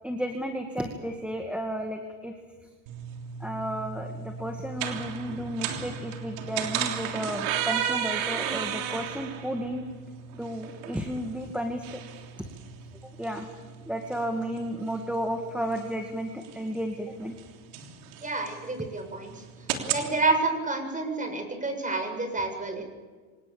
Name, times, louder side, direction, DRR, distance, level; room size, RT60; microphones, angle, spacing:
voice 1, 0.0-2.3 3.4-9.9 10.3-12.0 12.4-12.5 13.2-13.5 13.9-17.3, equal, 5° right, 3 dB, 2.3 m, -33 dB
sound 1, 2.9-20.1, right 8 dB, 75° right, 3.5 m, -35 dB
voice 2, 18.2-19.4 19.9-22.8, right 3 dB, 20° right, 5 dB, 7.4 m, -29 dB
26.0 x 19.0 x 7.3 m, 1.4 s
supercardioid pair, 95°, 43 cm